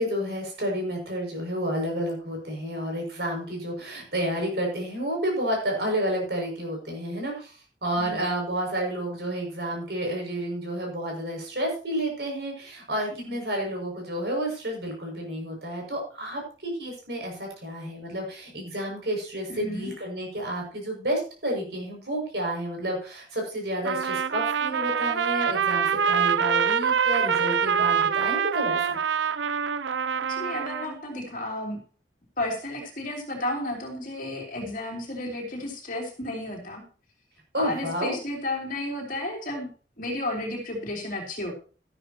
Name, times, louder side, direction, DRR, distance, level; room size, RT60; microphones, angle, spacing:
voice 1, 0.0-7.5 7.8-29.0 37.5-38.1, equal, 65° right, 1 dB, 6.5 m, -30 dB
voice 2, 19.5-19.9 30.3-31.8 32.4-36.8 37.5-39.7 40.0-41.5, left 1 dB, 45° left, 1 dB, 3.1 m, -32 dB
Trumpet, 23.8-31.0, right 7 dB, 85° right, 0.6 m, -25 dB
13.0 x 12.5 x 3.0 m, 0.38 s
head